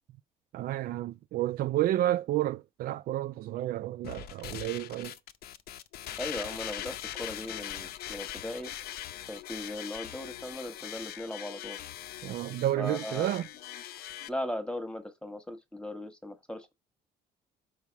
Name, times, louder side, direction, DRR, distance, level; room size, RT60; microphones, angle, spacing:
voice 1, 0.5-5.2 12.2-13.5, right 14 dB, 60° right, 0.4 m, -30 dB
sound 1, 4.0-14.3, left 12 dB, 65° left, 0.7 m, -41 dB
voice 2, 6.2-8.7 9.3-11.8 12.8-13.3 14.3-16.7, left 1 dB, 5° left, 1.3 m, -38 dB
5.6 x 4.7 x 4.6 m
cardioid pair, 110°, 17 cm